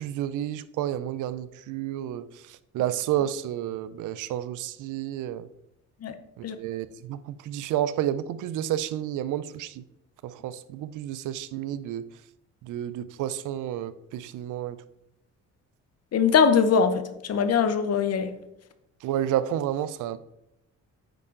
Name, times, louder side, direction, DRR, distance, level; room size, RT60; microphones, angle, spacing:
voice 1, 0.0-2.2 2.7-5.5 6.4-9.8 10.2-12.0 12.6-14.8 19.0-20.2, right 11 dB, 80° right, 0.5 m, -30 dB
voice 2, 16.1-17.0 17.3-18.3, left 6 dB, 55° left, 0.8 m, -21 dB
8.7 x 5.5 x 3.8 m
cardioid pair, 90°, 30 cm